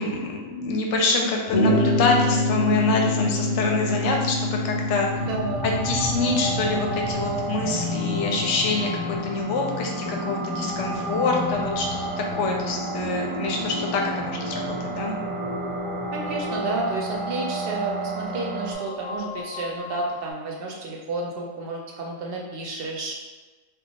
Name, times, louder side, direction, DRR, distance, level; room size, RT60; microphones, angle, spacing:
voice 1, 0.0-5.2 5.6-15.1, left 3 dB, 70° left, 0 dB, 0.8 m, -26 dB
sound 1, 1.5-9.2, left 2 dB, 35° left, 0.9 m, -27 dB
sound 2, 5.1-20.3, equal, 50° left, 0.3 m, -32 dB
voice 2, 5.2-5.7 16.1-23.1, right 3 dB, 65° right, -1 dB, 0.6 m, -31 dB
sound 3, 6.0-18.7, right 2 dB, 90° right, 1.0 m, -35 dB
2.3 x 2.3 x 3.9 m, 1.3 s
omnidirectional pair, 1.4 m